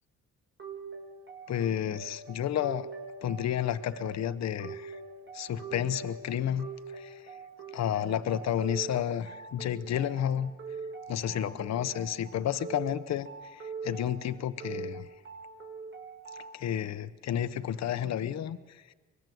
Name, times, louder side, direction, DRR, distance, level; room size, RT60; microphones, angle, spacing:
sound 1, 0.6-16.6, right 5 dB, 40° right, 6.6 m, -43 dB
voice 1, 1.5-2.9 3.2-5.0 5.3-7.3 7.7-10.5 11.1-15.1 16.3-18.9, left 10 dB, 60° left, 13 dB, 1.0 m, -31 dB
24.5 x 21.5 x 7.9 m, 1.3 s
cardioid pair, 90°, 30 cm